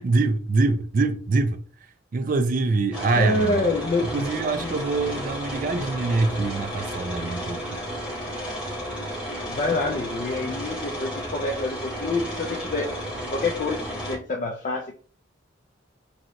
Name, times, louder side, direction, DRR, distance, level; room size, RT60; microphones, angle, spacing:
voice 1, 0.0-3.7 4.1-7.6, right 3 dB, 40° right, 0.3 m, -24 dB
sound 1, 2.9-14.2, equal, 5° right, 1.1 m, -33 dB
voice 2, 3.2-4.1 4.6-4.8 9.4-14.9, left 2 dB, 40° left, 0.3 m, -27 dB
3.1 x 2.7 x 2.5 m
head